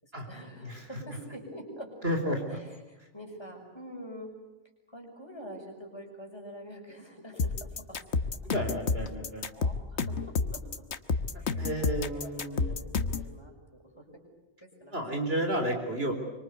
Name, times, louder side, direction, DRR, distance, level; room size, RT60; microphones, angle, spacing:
voice 1, 0.0-2.0 2.5-4.3 4.9-8.0 9.0-9.2 9.5-10.9 11.4-14.2 14.6-15.4, equal, 20° left, 1 dB, 6.5 m, -46 dB
voice 2, 2.0-2.6 8.4-9.5 11.6-12.7 14.9-16.1, equal, 50° right, 3 dB, 4.2 m, -31 dB
sound 1, 7.4-13.3, left 4 dB, 55° left, 1.4 m, -30 dB
26.0 x 25.0 x 8.2 m, 1.1 s
omnidirectional pair, 1.4 m